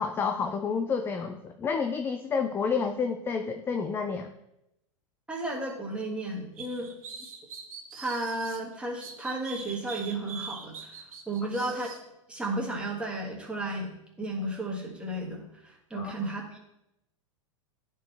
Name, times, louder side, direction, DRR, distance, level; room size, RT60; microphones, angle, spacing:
voice 1, 0.0-4.3 15.9-16.1, left 5 dB, 15° left, 6 dB, 0.3 m, -29 dB
voice 2, 5.3-7.0 7.9-11.9 12.3-16.6, right 2 dB, 5° right, -2 dB, 1.7 m, -33 dB
sound 1, 6.6-8.6 9.0-12.0, right 5 dB, 90° right, 1.2 m, -42 dB
10.0 x 4.5 x 3.4 m, 0.84 s
hypercardioid pair, 130°, 17 cm